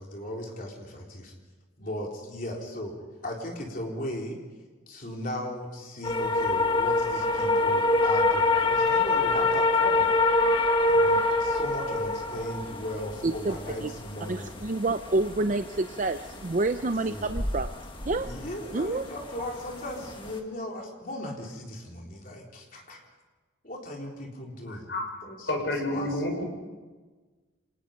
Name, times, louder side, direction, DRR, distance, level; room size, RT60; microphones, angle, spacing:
voice 1, 0.0-1.3 1.8-3.0 3.2-4.4 4.9-10.1 10.9-14.5 17.1-17.3 18.2-23.0 23.6-24.9 25.3-25.4 25.9-26.1, left 1 dB, 45° left, 0 dB, 3.9 m, -37 dB
sound 1, 6.0-20.4, left 2 dB, 25° left, 1.8 m, -26 dB
voice 2, 13.2-13.9 14.3-17.7 18.1-18.3 18.7-19.1, right 2 dB, 40° right, 9 dB, 0.5 m, -28 dB
voice 3, 24.7-25.1 25.5-26.4, left 1 dB, 65° left, 2 dB, 5.3 m, -30 dB
26.0 x 19.0 x 5.3 m, 1.3 s
head